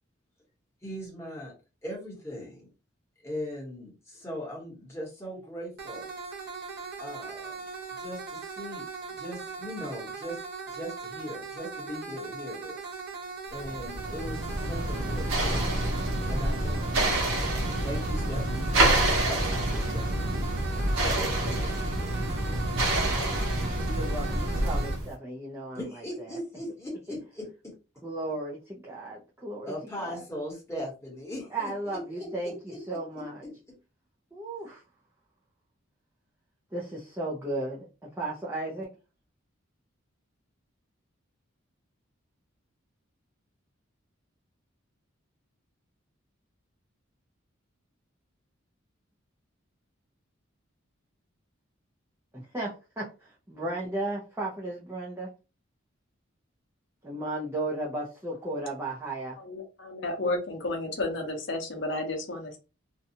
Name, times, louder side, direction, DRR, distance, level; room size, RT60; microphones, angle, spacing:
voice 1, 0.8-1.5 1.8-2.7 3.2-6.0 7.0-7.6 8.0-13.0 13.5-15.8 16.3-20.5 21.0-22.4 25.7-27.7 29.6-32.8 33.2-33.8, equal, 15° left, -4 dB, 1.1 m, -39 dB
sound 1, 5.8-25.0, right 5 dB, 50° right, 0.7 m, -39 dB
sound 2, 13.6-25.1, right 1 dB, 75° right, 0.9 m, -27 dB
voice 2, 23.9-26.0 26.3-26.4 28.0-29.7 30.0-30.2 31.5-33.4 34.3-34.8 36.7-37.9 38.2-38.9 52.3-55.3 57.0-59.4, right 2 dB, 10° right, -5 dB, 0.5 m, -35 dB
voice 3, 59.4-62.6, left 2 dB, 60° left, 3 dB, 0.7 m, -32 dB
2.6 x 2.2 x 2.7 m, 0.31 s
head